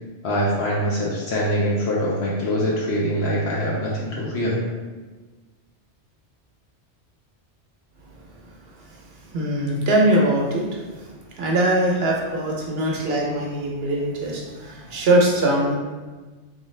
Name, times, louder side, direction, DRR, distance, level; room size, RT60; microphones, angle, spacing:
voice 1, 0.2-4.6, equal, 70° left, -4 dB, 0.9 m, -23 dB
voice 2, 9.3-11.0 11.4-15.7, right 1 dB, 65° right, -2 dB, 0.9 m, -21 dB
3.6 x 2.6 x 3.1 m, 1.3 s
omnidirectional pair, 1.2 m